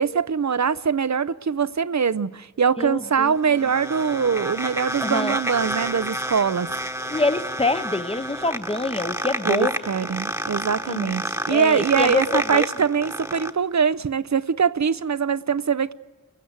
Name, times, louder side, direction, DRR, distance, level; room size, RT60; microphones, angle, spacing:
voice 1, 0.0-6.7 9.5-15.9, right 6 dB, 60° right, 0.6 m, -23 dB
voice 2, 2.8-3.3 5.0-5.4 7.1-9.7 10.9-11.1 11.5-12.7, left 2 dB, 20° left, 0.8 m, -25 dB
sound 1, 3.0-13.5, right 1 dB, 10° right, 1.2 m, -30 dB
28.5 x 16.5 x 8.0 m
wide cardioid pair, 60°, 32 cm